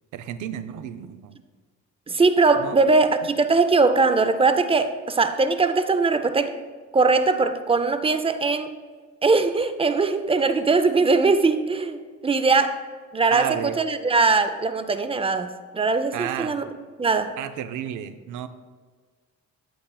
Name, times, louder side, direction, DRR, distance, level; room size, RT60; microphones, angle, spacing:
voice 1, 0.1-1.4 2.6-2.8 13.3-13.8 16.1-16.6 17.4-18.5, right 10 dB, 80° right, 10 dB, 0.5 m, -32 dB
voice 2, 2.1-6.6 6.9-8.7 9.2-12.8 13.1-15.5 15.7-16.6 17.0-17.4, right 3 dB, 20° right, 10 dB, 0.4 m, -21 dB
8.4 x 7.8 x 2.3 m, 1.5 s
cardioid pair, 90°, 30 cm